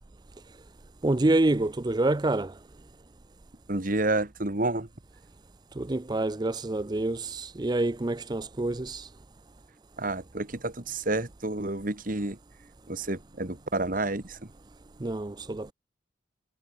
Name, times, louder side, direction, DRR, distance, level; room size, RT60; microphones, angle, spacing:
voice 1, 1.0-2.5 5.8-9.1 15.0-15.7, right 2 dB, 20° right, 0.5 m, -27 dB
voice 2, 3.7-4.9 10.0-12.4 12.9-14.4, right 2 dB, 45° right, 1.8 m, -29 dB
head